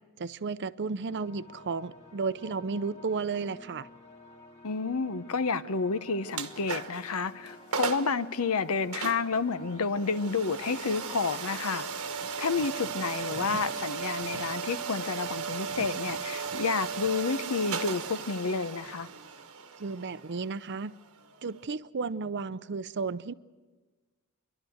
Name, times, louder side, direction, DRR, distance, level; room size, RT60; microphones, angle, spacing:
voice 1, 0.2-3.9 19.8-20.9 21.4-23.3, right 4 dB, 55° right, 0.6 m, -33 dB
sound 1, 1.1-15.3, left 2 dB, 25° left, 1.7 m, -51 dB
voice 2, 4.6-11.8 12.4-19.1, left 4 dB, 75° left, 0.8 m, -30 dB
sound 2, 6.3-7.1 7.5-7.6 7.7-8.2 8.9-21.7, right 6 dB, 75° right, 1.3 m, -36 dB
29.0 x 12.0 x 7.9 m
head